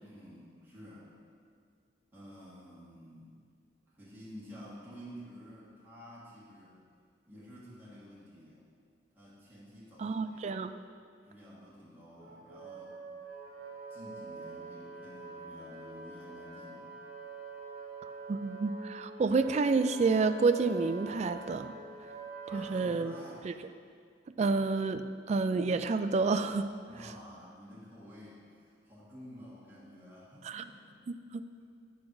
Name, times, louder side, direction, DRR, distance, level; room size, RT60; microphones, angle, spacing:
voice 1, 0.0-1.1 2.1-3.4 3.9-6.8 7.3-8.6 9.1-10.7 11.2-13.0 13.6-16.9 22.4-23.5 26.8-31.1, equal, 10° right, -9 dB, 1.7 m, -51 dB
voice 2, 10.0-10.7 18.3-21.7 22.5-23.1 23.4-23.5 24.4-26.7 30.4-30.6 31.3-31.4, right 4 dB, 35° right, 10 dB, 0.3 m, -29 dB
Wind instrument woodwind instrument, 12.2-23.0, right 4 dB, 55° right, 1.1 m, -46 dB
8.5 x 4.6 x 6.2 m, 2.1 s
head